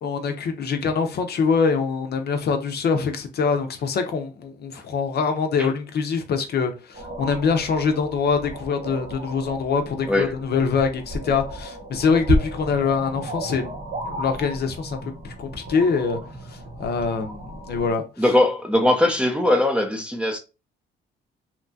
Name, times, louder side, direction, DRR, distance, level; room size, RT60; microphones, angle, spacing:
voice 1, 0.0-13.7 14.1-15.0 15.2-16.2 16.5-18.0, left 5 dB, 55° left, 0.6 m, -24 dB
sound 1, 6.9-17.9, right 1 dB, 45° right, 0.8 m, -33 dB
voice 2, 18.2-20.4, left 1 dB, 5° right, 0.5 m, -20 dB
2.8 x 2.2 x 2.6 m
cardioid pair, 90°, 20 cm